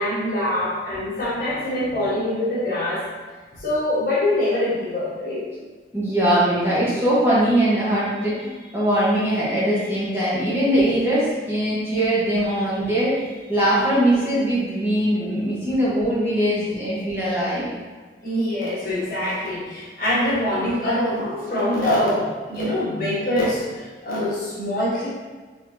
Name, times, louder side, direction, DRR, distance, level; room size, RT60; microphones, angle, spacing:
voice 1, 0.0-3.1 3.6-5.4 18.2-25.1, left 1 dB, 50° left, -8 dB, 1.4 m, -24 dB
voice 2, 5.9-17.7, right 1 dB, 15° right, -9 dB, 1.2 m, -21 dB
4.1 x 3.7 x 2.7 m, 1.4 s
head